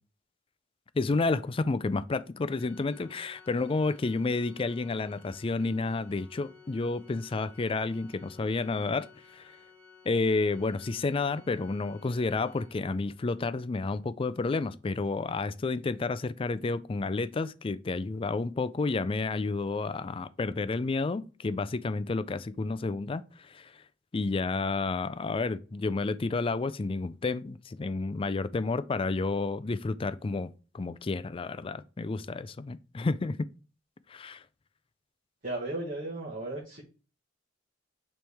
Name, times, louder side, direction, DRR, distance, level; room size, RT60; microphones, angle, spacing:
voice 1, 0.9-9.5 10.1-23.7 24.1-30.5 30.7-33.4 34.1-34.4, left 3 dB, 30° left, 0.4 m, -30 dB
Organ, 2.5-13.3, left 5 dB, 80° right, 1.4 m, -56 dB
voice 2, 35.4-36.8, right 2 dB, 40° right, 1.3 m, -35 dB
9.0 x 3.2 x 3.5 m
head